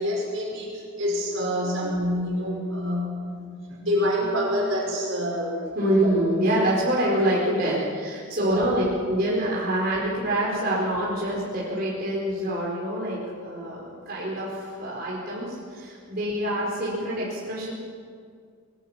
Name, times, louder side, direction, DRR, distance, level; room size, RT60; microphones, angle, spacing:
voice 1, 0.0-3.4 3.8-5.5 5.8-6.1 8.4-8.6, equal, 70° right, -2 dB, 6.2 m, -26 dB
voice 2, 5.7-17.7, equal, 50° right, -6 dB, 4.8 m, -26 dB
24.0 x 20.5 x 6.0 m, 2.1 s
head